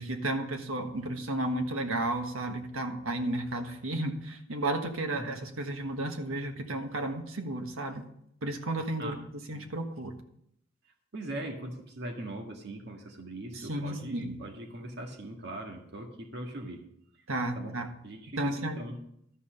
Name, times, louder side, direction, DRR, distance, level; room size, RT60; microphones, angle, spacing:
voice 1, 0.0-8.0 8.4-10.1 13.5-14.4 17.3-17.9 18.4-18.8, right 1 dB, 85° right, 5 dB, 1.5 m, -33 dB
voice 2, 11.1-16.8 17.6-17.7 18.0-19.0, right 1 dB, 55° right, 2 dB, 1.7 m, -40 dB
12.5 x 5.5 x 6.7 m, 0.73 s
head